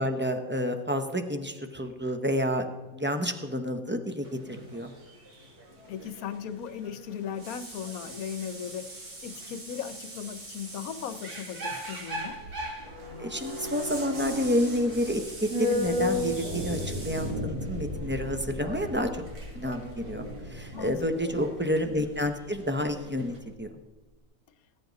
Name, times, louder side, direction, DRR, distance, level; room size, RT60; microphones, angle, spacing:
voice 1, 0.0-2.7 2.9-4.9 13.2-19.2 19.5-23.7, equal, 10° right, 6 dB, 0.6 m, -29 dB
sound 1, 4.2-23.4, right 2 dB, 85° right, 2.9 m, -43 dB
voice 2, 5.9-8.9 9.2-12.4 20.7-21.4, left 8 dB, 70° left, 12 dB, 1.2 m, -37 dB
sound 2, 12.1-22.6 22.8-22.9, left 1 dB, 70° right, 3.6 m, -34 dB
19.0 x 9.4 x 4.0 m, 1.2 s
omnidirectional pair, 1.6 m